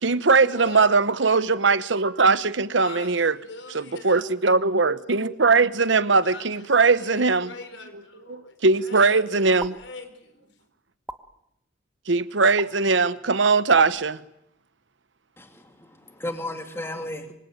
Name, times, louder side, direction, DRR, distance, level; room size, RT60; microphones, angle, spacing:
voice 1, 0.0-3.3 3.7-7.5 8.3-9.8 12.1-14.2, right 4 dB, 70° right, 1.0 m, -20 dB
voice 2, 0.5-0.9 2.8-4.3 6.2-9.3 9.7-10.5, left 3 dB, 70° left, 5.0 m, -42 dB
sound 1, 9.6-9.7 11.1-11.2 12.6-12.7 13.8-13.9, right 1 dB, 5° right, 1.2 m, -35 dB
voice 3, 15.4-17.3, left 1 dB, 10° left, 2.6 m, -34 dB
25.5 x 25.0 x 9.3 m
head